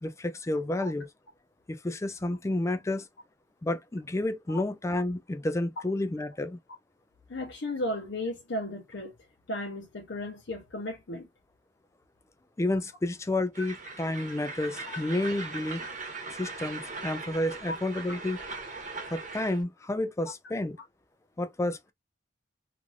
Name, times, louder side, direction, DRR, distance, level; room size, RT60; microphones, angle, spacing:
voice 1, 0.0-1.1 1.7-3.1 3.6-6.6 12.6-15.8 16.3-18.4 19.1-20.8 21.4-21.9, left 1 dB, 15° left, 0.3 m, -30 dB
voice 2, 7.3-9.1 9.5-11.3 14.9-15.0 17.7-17.8, left 1 dB, 65° left, 0.7 m, -35 dB
Train, 13.5-19.6, right 3 dB, 40° right, 1.2 m, -40 dB
3.1 x 2.5 x 2.4 m
head